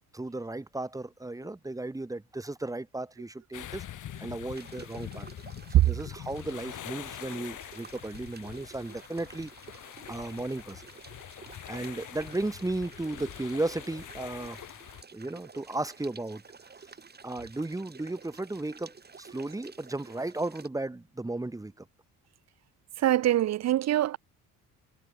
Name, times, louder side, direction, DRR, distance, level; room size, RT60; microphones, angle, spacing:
voice 1, 0.1-3.8 4.2-5.3 5.7-9.5 10.1-10.8 11.7-14.6 15.1-16.4 17.2-21.9, right 2 dB, 10° right, 1.3 m, -35 dB
sound 1, 3.5-15.0, left 11 dB, 55° left, 2.1 m, -44 dB
sound 2, 4.5-20.7, right 5 dB, 25° right, 3.1 m, -51 dB
voice 2, 23.0-24.2, right 13 dB, 45° right, 0.5 m, -24 dB
cardioid pair, 105°, 36 cm